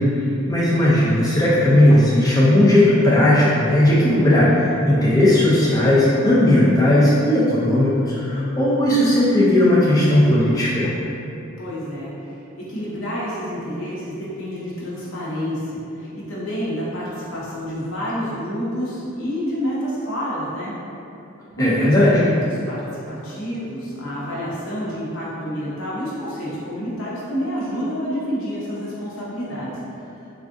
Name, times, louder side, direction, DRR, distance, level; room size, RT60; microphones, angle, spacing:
voice 1, 0.0-10.9 21.6-22.2, left 1 dB, 15° left, -9 dB, 0.4 m, -16 dB
voice 2, 11.6-20.7 21.6-30.1, equal, 85° left, -7 dB, 0.8 m, -28 dB
3.5 x 2.4 x 2.5 m, 2.8 s
head